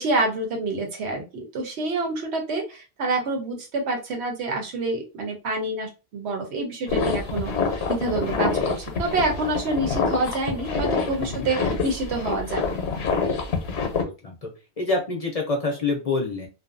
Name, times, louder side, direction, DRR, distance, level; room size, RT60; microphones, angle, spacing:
voice 1, 0.0-7.5 7.9-12.6, right 2 dB, 85° right, 2 dB, 1.1 m, -27 dB
sound 1, 6.9-14.0, left 4 dB, 90° left, 0.9 m, -26 dB
voice 2, 13.9-14.5 14.8-16.5, left 3 dB, 45° left, 2 dB, 0.6 m, -27 dB
2.5 x 2.2 x 2.5 m, 0.29 s
omnidirectional pair, 1.1 m